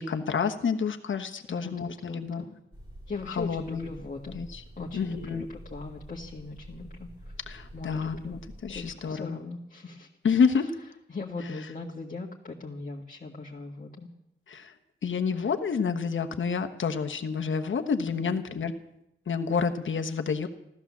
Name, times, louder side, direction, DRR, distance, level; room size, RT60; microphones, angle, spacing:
voice 1, 0.0-2.4 3.3-3.9 4.3-4.6 4.9-5.5 7.5-9.4 10.2-10.8 14.5-14.7 15.0-18.7 19.3-20.5, left 5 dB, 75° left, 7 dB, 1.2 m, -29 dB
voice 2, 2.1-2.6 3.1-4.4 4.8-7.4 7.7-8.4 8.7-10.1 11.1-14.1, left 3 dB, 40° left, -2 dB, 1.7 m, -39 dB
sound 1, 2.7-8.9, equal, 20° right, 2.7 m, -47 dB
15.0 x 13.0 x 7.3 m, 0.82 s
wide cardioid pair, 85°, 20 cm